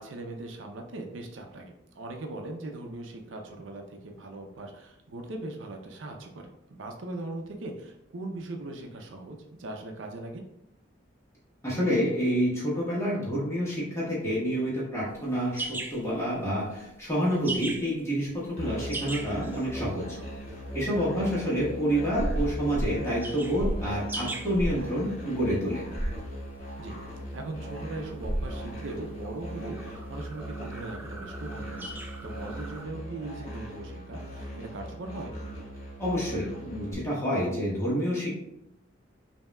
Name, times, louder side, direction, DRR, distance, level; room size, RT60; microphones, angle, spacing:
voice 1, 0.0-10.4 21.2-21.3 26.8-27.0 27.3-35.3, right 2 dB, 75° right, 3 dB, 0.6 m, -40 dB
voice 2, 11.6-20.0 20.7-25.8 36.0-38.3, equal, 15° left, -7 dB, 1.5 m, -28 dB
sound 1, 15.1-32.8, right 2 dB, 10° right, 0.3 m, -42 dB
Musical instrument, 18.6-36.9, right 1 dB, 40° left, 1.4 m, -39 dB
sound 2, 22.1-23.0 23.6-23.9 24.5-24.8 25.9-26.2 28.2-28.6, equal, 55° right, 1.4 m, -31 dB
5.3 x 2.8 x 2.3 m, 0.82 s
head